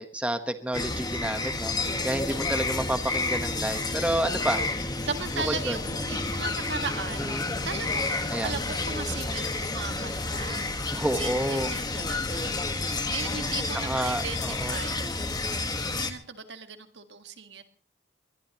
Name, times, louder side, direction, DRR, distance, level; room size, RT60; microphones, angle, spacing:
voice 1, 0.0-1.7 2.0-4.7 5.4-5.8 7.2-7.5 8.3-8.5 10.9-11.7 13.7-14.8, right 1 dB, 5° right, 8 dB, 1.2 m, -29 dB
sound 1, 0.7-16.1, left 3 dB, 25° left, 1.5 m, -30 dB
voice 2, 1.9-2.3 5.0-7.3 7.6-10.7 11.0-12.6 13.1-15.0 16.0-17.6, right 5 dB, 75° right, 7 dB, 1.7 m, -37 dB
22.0 x 20.0 x 3.0 m, 0.43 s
head